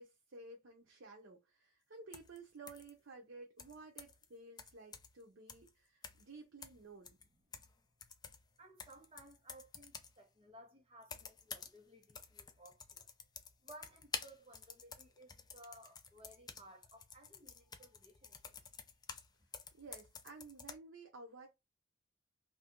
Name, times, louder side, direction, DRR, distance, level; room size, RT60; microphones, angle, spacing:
voice 1, 0.0-7.2 19.8-21.5, right 3 dB, 85° right, 0.7 m, -54 dB
sound 1, 2.1-2.4 2.7-2.9 3.6-4.2 4.6-5.2 5.5-5.7 6.0-6.3 6.6-7.8 8.0-10.2 11.0-11.8 12.0-19.3 19.5-20.8, left 5 dB, 20° left, 0.4 m, -50 dB
voice 2, 8.6-13.1 13.6-18.8, right 1 dB, 30° right, 1.0 m, -59 dB
2.8 x 2.6 x 3.6 m
head